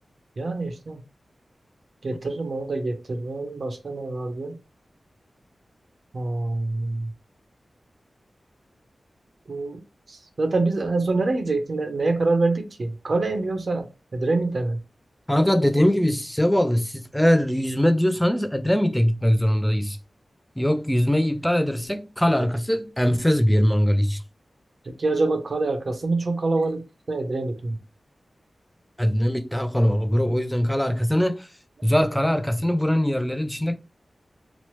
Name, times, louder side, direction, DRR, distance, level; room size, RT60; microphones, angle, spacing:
voice 1, 0.4-1.0 2.0-4.6 6.1-7.1 9.5-9.8 10.1-14.8 25.0-27.8, right 3 dB, 55° right, 0.6 m, -26 dB
voice 2, 15.3-20.0 20.6-24.2 29.0-31.5 31.8-33.8, equal, 5° left, 0.3 m, -21 dB
3.0 x 2.0 x 2.9 m
wide cardioid pair, 90°, 0 cm